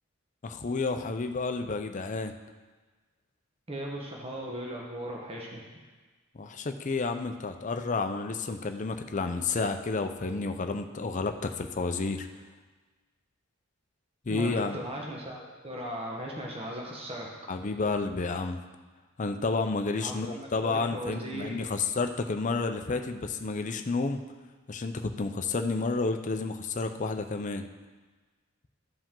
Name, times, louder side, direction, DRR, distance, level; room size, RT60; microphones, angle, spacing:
voice 1, 0.4-2.3 6.3-12.3 14.3-14.8 17.5-18.6 19.2-24.2 24.7-27.7, left 3 dB, 35° left, 7 dB, 0.5 m, -30 dB
voice 2, 3.7-5.6 14.3-17.3 20.0-21.7, equal, 25° right, -2 dB, 1.1 m, -38 dB
14.0 x 5.1 x 3.8 m, 1.3 s
head